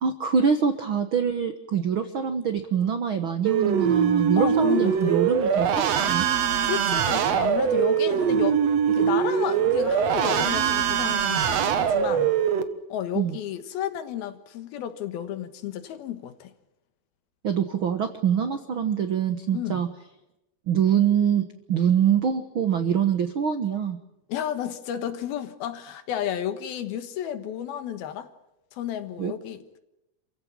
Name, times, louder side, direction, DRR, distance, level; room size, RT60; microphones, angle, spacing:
voice 1, 0.0-6.3 13.1-13.4 17.4-19.9 20.7-24.0 29.2-29.3, right 8 dB, 80° right, 1.1 m, -24 dB
sound 1, 3.4-12.6, right 8 dB, 55° right, 2.0 m, -22 dB
voice 2, 4.4-5.2 6.6-8.6 8.9-12.3 12.9-16.5 19.5-19.8 24.3-28.3 28.7-29.8, left 10 dB, 80° left, 3.3 m, -32 dB
28.0 x 16.0 x 8.9 m
omnidirectional pair, 4.3 m